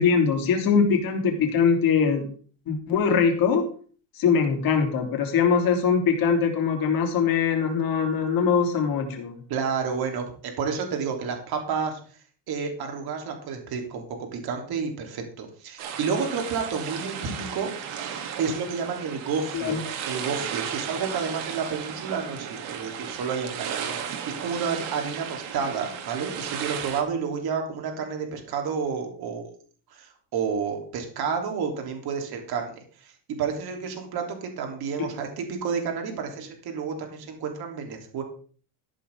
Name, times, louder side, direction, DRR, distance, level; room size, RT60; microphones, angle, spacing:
voice 1, 0.0-2.2 2.7-3.6 4.2-9.4 19.5-19.8, left 6 dB, 45° left, 3 dB, 3.3 m, -22 dB
voice 2, 9.5-12.0 12.5-14.0 14.3-17.7 18.4-19.8 20.0-29.5 29.9-32.7 33.0-38.2, right 6 dB, 45° right, 3 dB, 3.3 m, -30 dB
sound 1, 15.8-27.0, right 8 dB, 75° right, 2.9 m, -35 dB
13.5 x 11.0 x 3.7 m, 0.43 s
cardioid pair, 145°, 50 cm